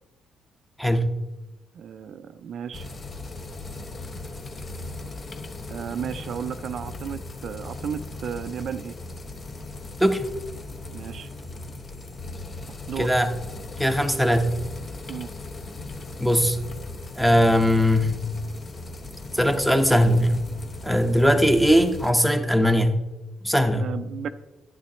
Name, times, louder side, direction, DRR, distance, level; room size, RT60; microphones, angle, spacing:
voice 1, 0.8-1.2 10.0-10.3 13.0-13.3 13.8-14.6 16.2-16.6 17.2-18.2 19.3-20.4 20.8-23.0 23.4-23.9, equal, ahead, 7 dB, 0.9 m, -20 dB
voice 2, 1.7-2.9 5.7-9.0 10.9-11.3 12.9-13.1 15.1-15.3 23.7-24.3, right 8 dB, 65° right, 11 dB, 0.4 m, -34 dB
sound 1, 2.7-22.1, left 2 dB, 35° left, 0.9 m, -38 dB
11.5 x 9.2 x 3.0 m, 1.1 s
cardioid pair, 90°, 0 cm